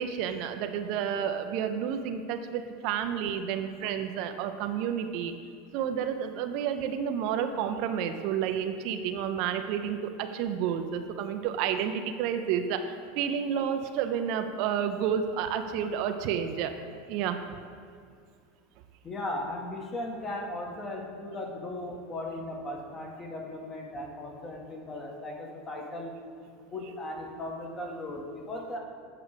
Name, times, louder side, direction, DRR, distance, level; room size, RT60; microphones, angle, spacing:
voice 1, 0.0-5.3 5.7-16.7 17.1-17.6, right 8 dB, 60° right, 7 dB, 0.5 m, -30 dB
voice 2, 19.0-26.1 26.7-28.8, left 1 dB, 30° left, 0 dB, 1.5 m, -37 dB
8.1 x 4.8 x 5.0 m, 2.2 s
hypercardioid pair, 100°, 0 cm